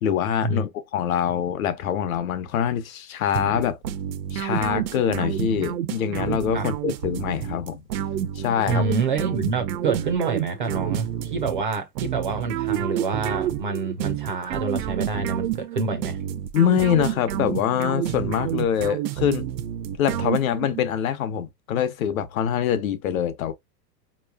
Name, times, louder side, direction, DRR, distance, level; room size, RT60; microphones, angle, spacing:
voice 1, 0.0-3.8 4.3-7.8 8.4-8.8 16.5-19.5 20.0-23.5, left 9 dB, 55° left, 0.8 m, -24 dB
sound 1, 3.3-20.8, right 11 dB, 80° right, 0.7 m, -29 dB
voice 2, 8.6-16.2, right 4 dB, 35° right, 0.4 m, -27 dB
5.0 x 3.0 x 2.2 m
supercardioid pair, 170°, 49 cm